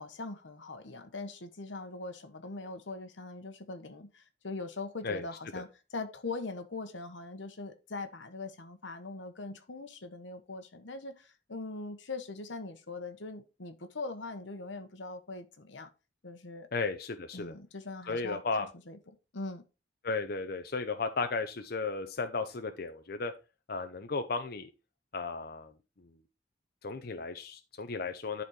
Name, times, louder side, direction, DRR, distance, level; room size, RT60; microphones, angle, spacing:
voice 1, 0.0-15.9 16.2-16.7 17.3-18.4 18.9-19.0 19.3-19.6, left 3 dB, 85° left, 1.2 m, -41 dB
voice 2, 16.7-17.5 18.1-18.7 20.0-23.3 23.7-24.7 25.1-25.7 26.0-26.1 26.8-28.4, left 4 dB, 55° left, 0.7 m, -34 dB
11.0 x 4.2 x 4.3 m
head